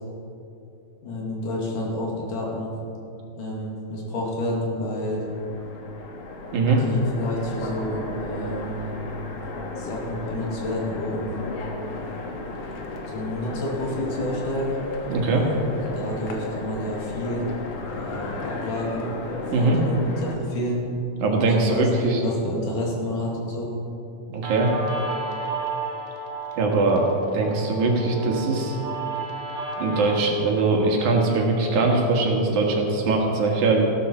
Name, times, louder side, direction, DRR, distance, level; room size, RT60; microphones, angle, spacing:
voice 1, 1.0-2.7 3.3-5.2 6.8-9.0 9.8-11.4 13.1-14.8 15.2-15.6 15.9-17.5 18.0-19.1 19.6-20.0 20.2-20.8 21.6-23.7, left 1 dB, 85° left, -3 dB, 3.7 m, -29 dB
Train, 5.0-20.4, left 2 dB, 60° left, 2.2 m, -34 dB
voice 2, 6.5-6.8 15.1-15.4 19.5-19.8 21.2-22.2 24.3-24.7 26.6-27.1 27.3-28.8 29.8-33.8, right 3 dB, 70° right, 0 dB, 3.0 m, -21 dB
Guitar, 24.4-31.4, right 3 dB, 40° right, 0.7 m, -33 dB
14.5 x 13.0 x 4.4 m, 2.8 s
omnidirectional pair, 3.6 m